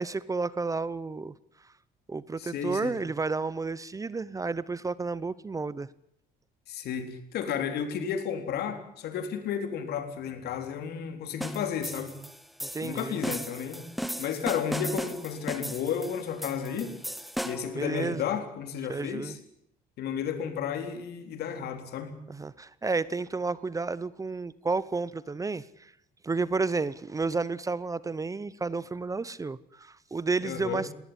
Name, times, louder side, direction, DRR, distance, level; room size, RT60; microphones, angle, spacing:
voice 1, 0.0-1.3 2.1-5.9 12.6-13.2 17.7-18.3 18.9-19.4 22.3-25.9 26.2-30.9, right 4 dB, 20° right, 19 dB, 0.8 m, -31 dB
voice 2, 2.4-3.0 6.7-12.1 12.8-13.9 14.2-17.0 17.4-19.4 20.0-22.1 30.4-30.8, left 7 dB, 70° left, 8 dB, 4.1 m, -32 dB
sound 1, 11.4-17.8, equal, ahead, 1.6 m, -36 dB
20.5 x 19.0 x 9.9 m, 0.74 s
cardioid pair, 110°, 17 cm